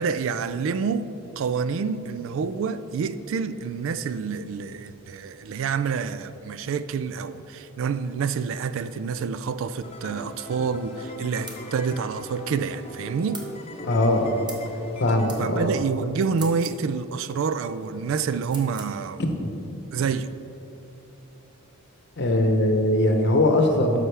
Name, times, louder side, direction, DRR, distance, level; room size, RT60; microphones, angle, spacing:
voice 1, 0.0-13.5 15.4-19.2 19.9-20.4, right 5 dB, 65° right, 0.3 m, -28 dB
sound 1, 9.8-15.3, left 1 dB, 30° left, 0.8 m, -40 dB
sound 2, 11.5-11.6 13.3-13.5 14.5-14.7 15.3-15.4 16.3-16.8 18.5-18.9, right 3 dB, 20° right, 0.9 m, -40 dB
voice 2, 13.8-14.3 15.0-15.7 22.2-24.0, left 1 dB, 55° left, 0.9 m, -21 dB
12.0 x 5.6 x 3.4 m
head